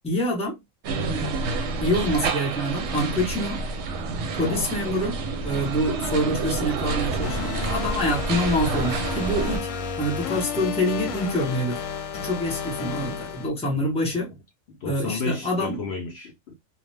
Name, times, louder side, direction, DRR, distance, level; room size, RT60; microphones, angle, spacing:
voice 1, 0.0-0.6 1.8-3.7 4.4-9.7 10.0-11.8 12.1-14.3 14.8-15.8, equal, 5° left, 0.7 m, -26 dB
sound 1, 0.8-9.6, right 4 dB, 65° right, 0.8 m, -28 dB
voice 2, 4.4-4.7 14.7-16.6, left 4 dB, 65° left, 0.7 m, -33 dB
sound 2, 7.2-13.5, left 6 dB, 85° left, 1.0 m, -32 dB
2.3 x 2.0 x 3.1 m
omnidirectional pair, 1.3 m